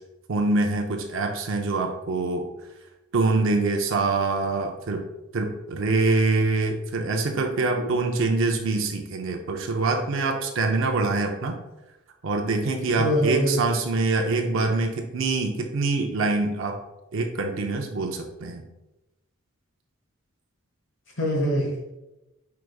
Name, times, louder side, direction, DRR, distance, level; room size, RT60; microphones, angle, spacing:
voice 1, 0.3-2.5 3.1-5.0 5.3-11.6 12.2-16.8 17.1-18.6, right 3 dB, 60° right, 3 dB, 0.5 m, -25 dB
voice 2, 13.0-13.6 21.2-21.9, equal, 55° left, 0 dB, 1.1 m, -24 dB
4.9 x 4.6 x 2.3 m, 0.99 s
head